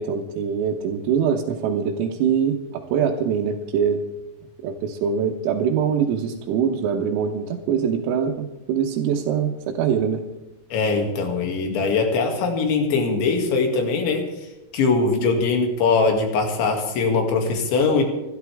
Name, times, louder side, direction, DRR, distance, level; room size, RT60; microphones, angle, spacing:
voice 1, 0.0-4.0 4.6-10.2, right 7 dB, 85° right, -1 dB, 3.9 m, -23 dB
voice 2, 10.7-14.2 14.7-18.0, left 4 dB, 65° left, 3 dB, 4.5 m, -21 dB
28.0 x 12.5 x 3.5 m, 0.99 s
omnidirectional pair, 5.9 m